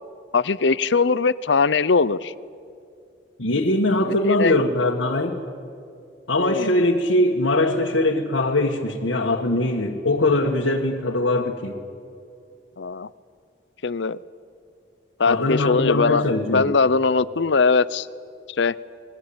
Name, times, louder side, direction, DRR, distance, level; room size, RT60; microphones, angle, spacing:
voice 1, 0.3-2.3 4.4-4.6 6.4-6.8 12.8-13.1 13.8-14.2 15.2-18.1 18.6-18.7, left 4 dB, 70° left, 17 dB, 0.7 m, -20 dB
voice 2, 3.4-5.4 6.3-11.8 15.3-16.7, left 2 dB, 90° left, -2 dB, 1.8 m, -21 dB
28.0 x 21.0 x 8.7 m, 2.3 s
head